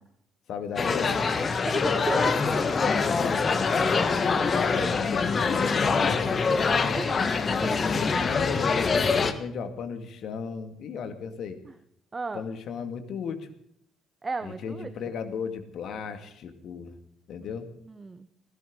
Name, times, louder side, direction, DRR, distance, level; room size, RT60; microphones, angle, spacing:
voice 1, 0.5-1.2 3.0-3.4 4.6-6.9 7.9-11.6 12.3-13.5 14.4-16.9 17.3-17.6, left 6 dB, 50° left, 8 dB, 2.2 m, -35 dB
sound 1, 0.8-9.3, left 4 dB, 35° left, 1.6 m, -24 dB
voice 2, 1.7-2.4 4.8-4.9 6.9-7.2 7.6-8.0 12.1-12.4 14.2-14.9 17.8-18.3, right 3 dB, 25° right, 12 dB, 1.1 m, -34 dB
20.0 x 17.5 x 4.0 m, 0.67 s
figure-of-eight pair, 45°, 0 cm